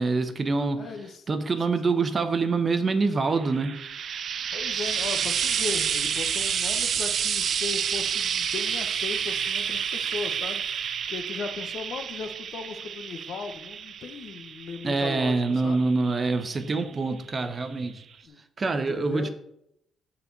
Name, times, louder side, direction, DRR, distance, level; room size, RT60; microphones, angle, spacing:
voice 1, 0.0-0.9 1.3-3.8 14.8-18.0 18.6-19.3, right 3 dB, 35° right, 9 dB, 0.9 m, -25 dB
voice 2, 0.8-1.2 4.5-10.6 11.1-15.8 18.2-18.4 18.7-19.3, left 5 dB, 65° left, 8 dB, 0.9 m, -37 dB
Frying (food), 3.4-16.8 17.8-17.9, right 8 dB, 60° right, 0.4 m, -29 dB
6.9 x 4.2 x 6.6 m, 0.78 s
cardioid pair, 90°, 0 cm